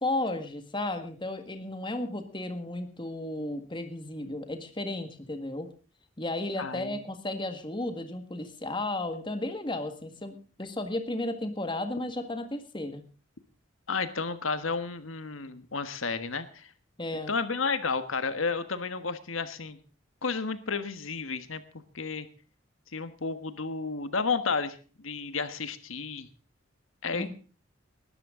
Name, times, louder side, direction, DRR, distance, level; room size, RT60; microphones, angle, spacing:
voice 1, 0.0-5.7 6.2-13.0 17.0-17.3 27.1-27.3, left 2 dB, 25° left, 7 dB, 1.7 m, -34 dB
voice 2, 6.6-7.0 13.9-16.7 17.3-19.8 20.2-21.6 21.9-22.3 22.9-24.8 25.0-26.3 27.0-27.4, left 4 dB, 85° left, 11 dB, 1.4 m, -32 dB
20.0 x 13.0 x 3.8 m, 0.37 s
head